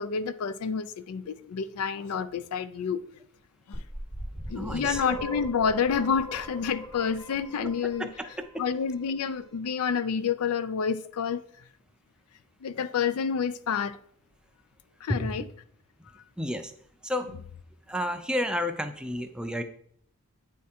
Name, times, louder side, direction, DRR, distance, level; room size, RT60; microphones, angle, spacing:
voice 1, 0.0-3.0 3.7-3.8 4.5-8.1 8.6-11.4 12.6-14.0 15.0-15.5, left 6 dB, 90° left, 0.4 m, -29 dB
sound 1, 3.7-8.6, equal, 60° left, 2.1 m, -39 dB
voice 2, 4.6-5.0 7.6-7.7 8.0-8.5 15.1-15.5 16.4-16.7 17.0-17.3 17.9-19.6, left 1 dB, 5° right, 0.4 m, -31 dB
8.3 x 3.6 x 4.3 m
head